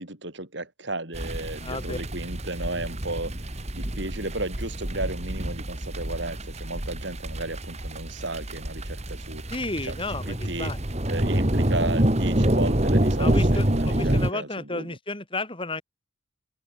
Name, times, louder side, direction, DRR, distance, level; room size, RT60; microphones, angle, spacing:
voice 1, 0.0-9.5 9.8-9.9 10.3-10.7 11.1-14.9, right 2 dB, 60° right, 4.4 m, -34 dB
sound 1, 1.1-14.3, right 1 dB, 35° right, 2.3 m, -27 dB
voice 2, 1.6-2.0 9.5-10.8 13.2-15.8, left 2 dB, 25° left, 6.3 m, -32 dB
open air
head